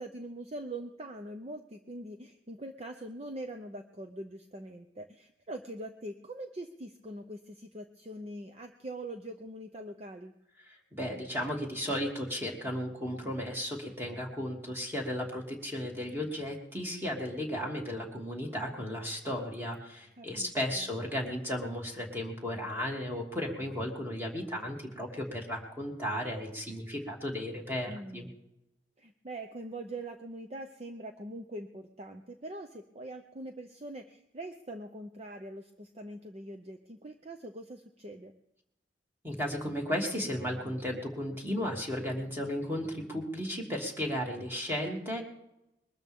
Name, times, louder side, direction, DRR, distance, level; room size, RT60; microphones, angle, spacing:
voice 1, 0.0-10.3 20.2-20.9 27.8-28.4 29.0-38.3, right 1 dB, 35° right, 5 dB, 0.8 m, -43 dB
voice 2, 10.9-28.3 39.2-45.2, equal, 10° right, -1 dB, 3.0 m, -35 dB
22.5 x 13.0 x 3.7 m, 0.86 s
head